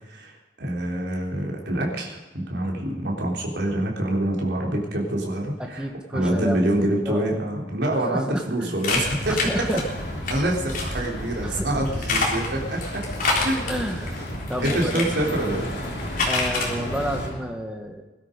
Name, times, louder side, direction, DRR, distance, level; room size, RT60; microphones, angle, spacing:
voice 1, 0.1-5.9 6.1-9.4 10.3-13.0 13.4-13.6 14.6-15.7, right 1 dB, 75° right, -1 dB, 3.6 m, -26 dB
voice 2, 5.6-7.4 8.1-8.9 9.3-9.8 11.4-11.8 13.7-14.2 14.5-15.0 16.3-18.0, equal, 5° right, 3 dB, 1.6 m, -31 dB
sound 1, 8.8-10.3 10.7-11.1 11.8-15.1 15.8-16.7, left 3 dB, 50° left, 3.8 m, -26 dB
sound 2, 8.9-17.3, equal, 65° left, 5.2 m, -32 dB
21.0 x 12.5 x 5.3 m, 1.2 s
head